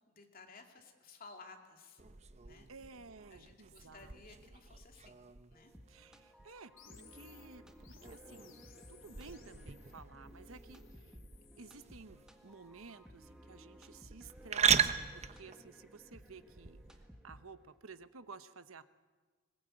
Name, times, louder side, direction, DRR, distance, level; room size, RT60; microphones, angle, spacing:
voice 1, 0.1-2.0 2.4-2.7 3.3-5.2 5.5-5.7, left 4 dB, 45° left, 3 dB, 2.7 m, -56 dB
sound 1, 2.0-17.0, right 8 dB, 35° right, 0.9 m, -39 dB
voice 2, 2.7-4.2 5.9-8.6 8.9-11.2 11.6-16.8 17.2-18.8, right 4 dB, 80° right, 12 dB, 1.0 m, -54 dB
sound 2, 5.5-17.8, equal, 5° right, 1.7 m, -58 dB
sound 3, 6.8-11.9, left 7 dB, 70° left, 2.3 m, -61 dB
21.0 x 20.5 x 8.9 m, 1.4 s
head